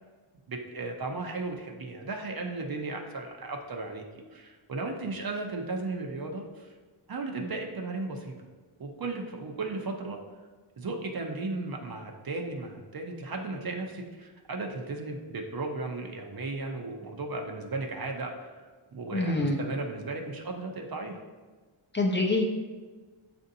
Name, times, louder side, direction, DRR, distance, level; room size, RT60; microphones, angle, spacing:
voice 1, 0.5-4.0 4.3-6.7 7.1-8.3 8.8-10.2 10.8-21.2, right 3 dB, 45° right, 2 dB, 0.6 m, -35 dB
voice 2, 19.1-19.6 21.9-22.5, left 2 dB, 25° left, 0 dB, 0.6 m, -25 dB
7.7 x 2.6 x 2.7 m, 1.4 s
wide cardioid pair, 75°, 49 cm